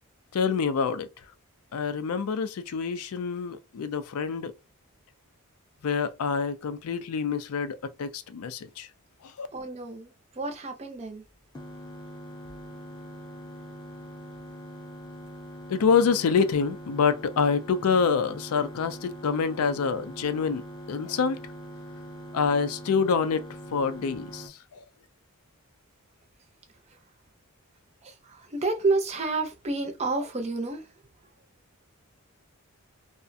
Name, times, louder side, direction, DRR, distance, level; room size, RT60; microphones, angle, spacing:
voice 1, 0.3-1.1 1.7-4.5 5.8-8.9 9.2-9.5 15.7-21.4 22.3-23.5 23.7-24.8, left 5 dB, 75° left, 0.4 m, -26 dB
voice 2, 9.5-11.2 26.9-27.0 28.0-30.9, right 3 dB, 30° right, 0.5 m, -30 dB
sound 1, 11.5-24.5, equal, 20° left, 0.7 m, -43 dB
2.4 x 2.1 x 2.6 m
head